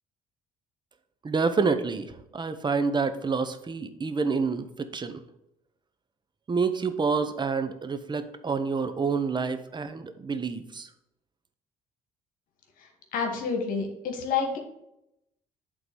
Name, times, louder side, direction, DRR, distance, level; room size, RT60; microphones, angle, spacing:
voice 1, 1.2-5.2 6.5-10.9, right 4 dB, 30° right, 10 dB, 0.9 m, -28 dB
voice 2, 12.8-14.6, left 5 dB, 70° left, 3 dB, 1.5 m, -29 dB
8.0 x 3.9 x 6.8 m, 0.84 s
supercardioid pair, 65°, 15 cm